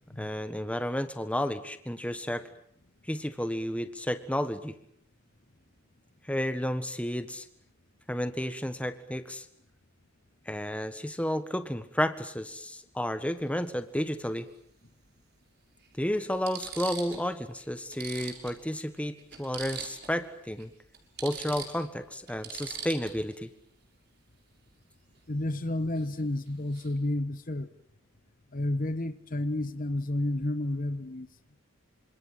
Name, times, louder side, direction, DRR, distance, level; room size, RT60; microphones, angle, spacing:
voice 1, 0.2-2.5 3.1-4.7 6.2-7.5 8.1-9.5 10.5-14.5 16.0-20.7 21.2-23.5, equal, 5° left, 10 dB, 1.5 m, -32 dB
sound 1, 13.6-13.7 15.1-15.2 15.8-15.9 16.3-17.3 17.6-17.7 17.9-20.2 20.5-20.6 20.9-23.4 26.0-26.2 26.5-26.9, right 6 dB, 50° right, 6.1 m, -41 dB
voice 2, 25.3-27.7 28.5-31.3, left 1 dB, 40° left, 12 dB, 1.2 m, -31 dB
28.5 x 26.5 x 7.5 m, 0.63 s
head